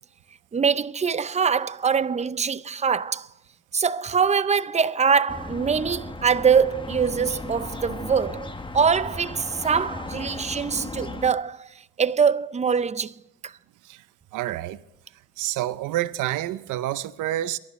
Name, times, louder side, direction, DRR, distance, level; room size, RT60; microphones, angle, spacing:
voice 1, 0.5-3.3 3.7-11.7 12.0-13.1 13.4-13.5, right 6 dB, 25° right, 0.5 m, -23 dB
sound 1, 5.3-11.3, left 2 dB, 15° left, 1.1 m, -36 dB
voice 2, 14.3-14.8 15.4-17.6, right 14 dB, 90° right, 0.6 m, -28 dB
23.0 x 11.5 x 3.2 m
cardioid pair, 90°, 30 cm